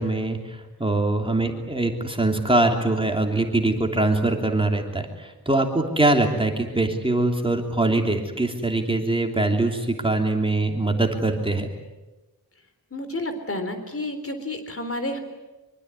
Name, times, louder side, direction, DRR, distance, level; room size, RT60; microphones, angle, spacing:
voice 1, 0.0-11.7, right 2 dB, 15° right, 3 dB, 3.1 m, -23 dB
voice 2, 12.9-15.2, left 1 dB, 35° left, 8 dB, 3.8 m, -30 dB
24.5 x 24.5 x 9.8 m, 1.1 s
wide cardioid pair, 135°, 38 cm